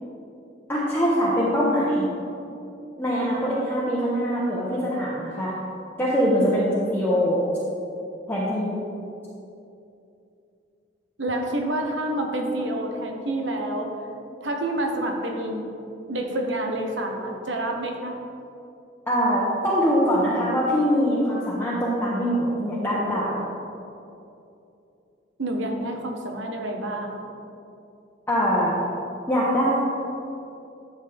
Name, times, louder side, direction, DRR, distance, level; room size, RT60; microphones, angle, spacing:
voice 1, 0.7-2.1 3.0-5.5 6.0-7.4 8.3-8.8 19.1-23.4 28.3-28.7 29.3-29.8, equal, 10° left, -7 dB, 1.1 m, -23 dB
voice 2, 11.2-13.9 14.4-15.7 16.1-18.2 25.4-27.2, right 1 dB, 80° right, 3 dB, 1.1 m, -28 dB
11.5 x 7.3 x 3.6 m, 2.7 s
head